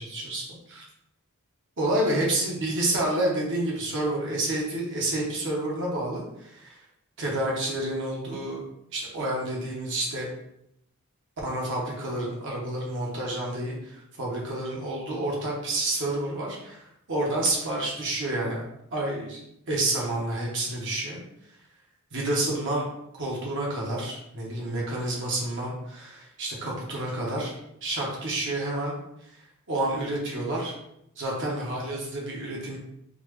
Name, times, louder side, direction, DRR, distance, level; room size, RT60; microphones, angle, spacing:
voice 1, 0.1-0.4 0.7-0.8 1.8-6.8 7.2-8.6 8.9-10.3 11.4-18.6 18.9-19.4 19.7-21.2 22.1-22.9 23.2-27.5 27.8-29.0 29.3-29.4 29.7-30.7 31.2-32.8, right 1 dB, 55° right, -3 dB, 1.0 m, -29 dB
4.0 x 2.4 x 3.1 m, 0.78 s
head